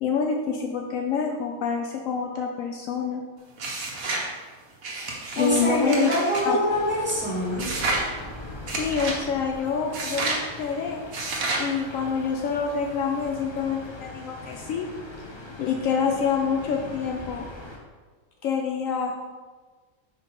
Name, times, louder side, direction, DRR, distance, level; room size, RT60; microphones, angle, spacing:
voice 1, 0.0-3.2 5.3-6.1 6.5-6.6 8.8-11.1 11.6-14.9 15.6-17.5 18.4-19.1, left 6 dB, 70° left, 2 dB, 0.9 m, -27 dB
sound 1, 3.6-4.3 4.8-6.5 7.6-8.1 8.7-9.2 9.9-10.4 11.1-11.7, right 3 dB, 70° right, 1.6 m, -29 dB
voice 2, 5.3-7.7, equal, 5° right, -6 dB, 2.1 m, -24 dB
sound 2, 6.7-17.8, left 2 dB, 25° left, 0.6 m, -41 dB
5.7 x 4.6 x 5.4 m, 1.4 s
omnidirectional pair, 1.5 m